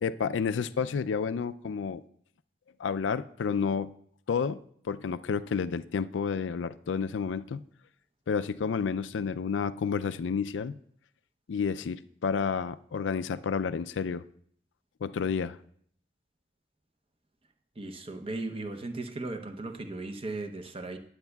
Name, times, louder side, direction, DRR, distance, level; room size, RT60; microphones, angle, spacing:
voice 1, 0.0-2.0 2.8-3.9 4.3-7.6 8.3-10.8 11.5-14.2 15.0-15.6, left 6 dB, 85° left, 13 dB, 0.4 m, -30 dB
voice 2, 17.8-21.0, right 2 dB, 30° right, 6 dB, 0.8 m, -37 dB
19.0 x 7.9 x 2.3 m, 0.62 s
head